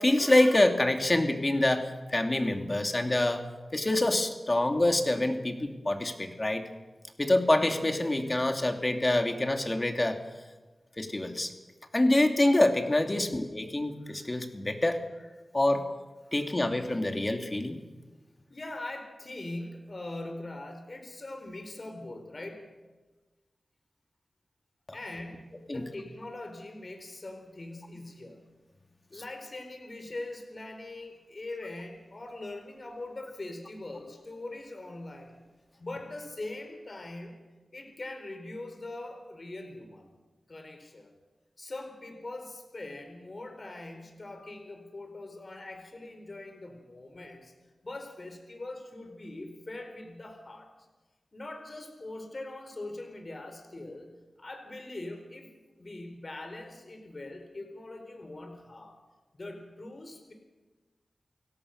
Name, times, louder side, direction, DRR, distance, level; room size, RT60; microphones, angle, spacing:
voice 1, 0.0-3.4 3.7-6.6 7.2-10.2 11.0-11.5 11.9-15.0 15.5-15.8 16.3-17.8 25.7-25.8, left 1 dB, 30° left, 5 dB, 2.8 m, -26 dB
voice 2, 18.5-22.7 24.9-28.4 29.1-35.5 35.8-37.4 37.7-40.1 40.5-41.1 41.6-47.5 47.8-50.7 51.3-55.5 55.8-59.0 59.3-60.3, left 2 dB, 45° left, 5 dB, 4.3 m, -42 dB
29.0 x 17.5 x 6.6 m, 1.2 s
wide cardioid pair, 65°, 0 cm